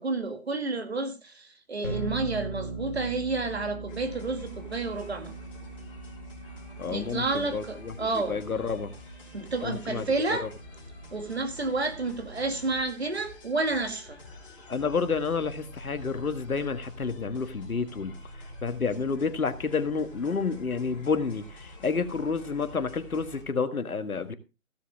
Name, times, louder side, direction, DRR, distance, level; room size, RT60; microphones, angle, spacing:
voice 1, 0.0-5.4 6.9-8.4 9.3-10.5 11.1-14.2, right 3 dB, 50° right, 2.3 m, -30 dB
sound 1, 1.8-15.3, right 3 dB, 15° right, 1.0 m, -42 dB
sound 2, 3.9-23.4, left 2 dB, 20° left, 3.5 m, -46 dB
voice 2, 6.8-7.9 8.3-8.9 9.6-10.5 14.7-18.2 18.6-24.3, left 5 dB, 80° left, 1.7 m, -30 dB
16.0 x 7.7 x 3.5 m
hypercardioid pair, 180°, 42 cm